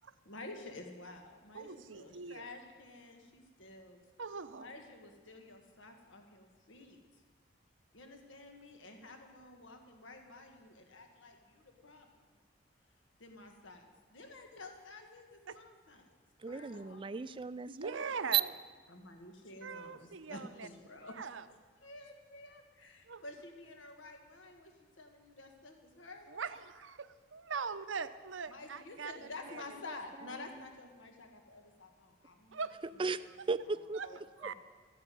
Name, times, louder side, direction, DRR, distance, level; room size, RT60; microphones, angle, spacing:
voice 1, 0.2-4.0 4.6-7.2 7.9-12.1 13.2-16.1 16.5-17.0 18.9-21.2 21.8-26.4 28.5-32.6 32.9-33.2 34.0-34.5, left 2 dB, 80° left, 4 dB, 1.6 m, -51 dB
voice 2, 1.5-2.5 4.2-4.7 15.5-15.6 17.7-18.5 19.6-20.7 21.2-21.4 23.1-23.2 26.3-29.1 29.5-29.6 32.5-32.8 33.9-34.1 34.4-34.5, right 5 dB, 85° right, 12 dB, 0.7 m, -41 dB
voice 3, 16.4-18.0 18.3-18.4 33.0-34.0 34.4-34.5, right 6 dB, 25° right, 15 dB, 0.4 m, -35 dB
14.0 x 9.8 x 9.3 m, 1.5 s
head